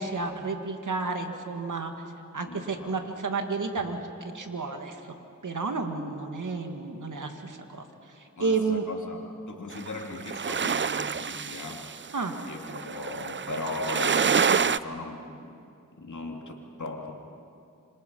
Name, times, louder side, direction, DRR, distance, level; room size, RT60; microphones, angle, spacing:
voice 1, 0.0-1.9 2.3-4.0 4.3-5.2 5.4-8.9 12.1-12.4, right 4 dB, 70° right, 5 dB, 2.2 m, -31 dB
voice 2, 2.4-3.1 8.4-11.9 12.4-15.6 16.0-17.1, left 3 dB, 65° left, 1 dB, 3.0 m, -38 dB
sound 1, 9.7-14.8, right 6 dB, 35° right, 0.5 m, -27 dB
26.5 x 25.5 x 5.6 m, 2.5 s
cardioid pair, 45°, 32 cm